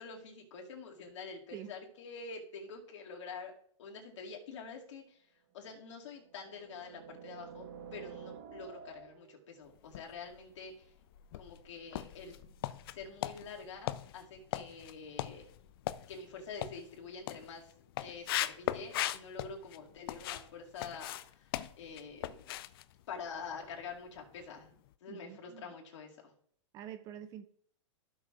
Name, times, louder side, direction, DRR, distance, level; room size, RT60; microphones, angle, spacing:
voice 1, 0.0-3.5 3.8-5.2 5.5-7.7 7.9-10.9 11.4-12.4 12.9-15.4 16.1-17.7 18.0-22.4 23.1-24.7 25.0-26.3, left 5 dB, 65° left, 2.1 m, -46 dB
sound 1, 4.8-4.9 5.9-9.4, right 6 dB, 45° right, 1.0 m, -50 dB
sound 2, 9.8-10.5 11.0-20.5 20.8-23.9 24.2-24.4 24.9-25.0, left 14 dB, 50° left, 0.4 m, -39 dB
voice 2, 25.1-25.7 26.7-27.5, right 10 dB, 20° right, 0.3 m, -47 dB
14.0 x 6.2 x 2.4 m
hypercardioid pair, 150°, 16 cm